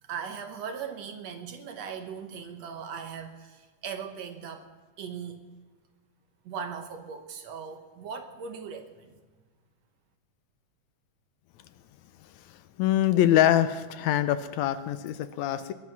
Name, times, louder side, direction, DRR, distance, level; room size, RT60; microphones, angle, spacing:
voice 1, 0.0-4.7 5.0-5.4 6.4-9.2, right 6 dB, 65° right, 6 dB, 2.2 m, -39 dB
voice 2, 12.5-15.7, left 12 dB, 75° left, 12 dB, 1.8 m, -24 dB
20.5 x 10.5 x 6.0 m, 1.4 s
omnidirectional pair, 3.4 m